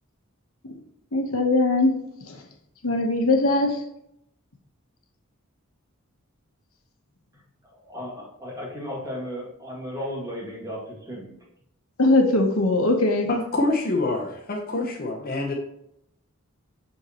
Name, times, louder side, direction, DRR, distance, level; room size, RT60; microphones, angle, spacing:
voice 1, 1.1-2.4 2.8-3.8 12.0-13.3, left 2 dB, 75° left, 3 dB, 1.0 m, -21 dB
voice 2, 7.7-11.4, equal, 15° right, -4 dB, 2.1 m, -35 dB
voice 3, 13.3-15.5, left 2 dB, 45° left, 0 dB, 0.8 m, -26 dB
6.6 x 5.3 x 2.9 m, 0.75 s
head